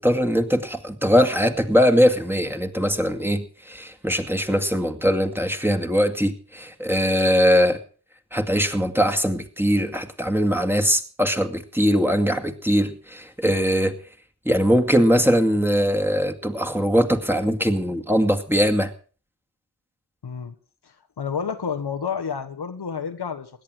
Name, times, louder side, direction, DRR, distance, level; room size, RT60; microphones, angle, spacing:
voice 1, 0.0-7.8 8.3-14.0 14.5-18.9, equal, 5° right, 6 dB, 2.2 m, -21 dB
voice 2, 20.2-20.5 21.2-23.5, left 6 dB, 85° left, 7 dB, 1.4 m, -29 dB
17.0 x 10.5 x 6.3 m, 0.39 s
cardioid pair, 45°, 39 cm